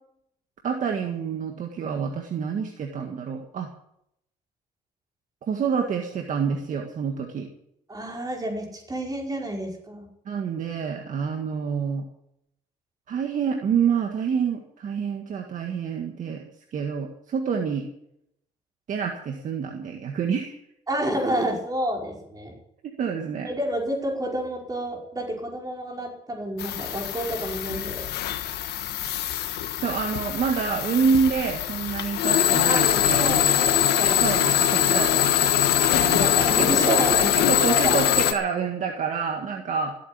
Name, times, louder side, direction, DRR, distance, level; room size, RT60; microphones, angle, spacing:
voice 1, 0.6-3.7 5.4-7.5 10.3-12.1 13.1-16.4 16.7-17.9 18.9-20.6 22.8-23.5 29.8-33.6 34.2-35.6 36.0-36.2 36.6-37.0 37.4-40.0, right 6 dB, 50° right, 3 dB, 1.8 m, -27 dB
voice 2, 7.9-10.1 20.9-22.6 23.4-28.1 32.6-34.2 36.0-38.0, right 1 dB, 20° right, 0 dB, 5.1 m, -29 dB
sound 1, 26.6-38.3, left 11 dB, 75° left, 1.4 m, -23 dB
15.5 x 8.8 x 8.7 m, 0.76 s
cardioid pair, 110°, 17 cm